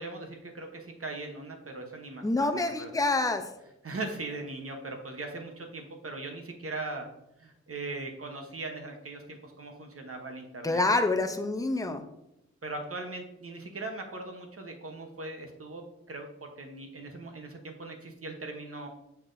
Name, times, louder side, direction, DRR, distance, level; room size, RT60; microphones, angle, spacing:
voice 1, 0.0-2.9 3.8-7.1 7.4-10.8 12.6-18.9, right 2 dB, 50° right, 3 dB, 1.0 m, -40 dB
voice 2, 2.2-3.5 10.6-12.0, left 2 dB, 10° left, 6 dB, 0.6 m, -27 dB
6.6 x 5.8 x 2.6 m, 0.87 s
cardioid pair, 55°, 29 cm